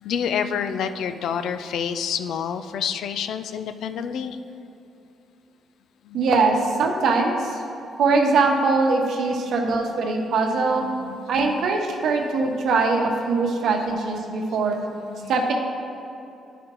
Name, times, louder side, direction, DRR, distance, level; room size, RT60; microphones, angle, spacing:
voice 1, 0.0-4.4 6.1-6.3 9.3-9.5 10.3-11.5 13.7-13.8 14.4-14.7 15.1-15.3, left 7 dB, 75° left, 10 dB, 0.4 m, -29 dB
voice 2, 6.1-7.6 8.0-10.8 11.3-14.8 15.3-15.5, right 3 dB, 70° right, 2 dB, 1.0 m, -22 dB
11.0 x 5.0 x 3.0 m, 2.8 s
cardioid pair, 115°, 0 cm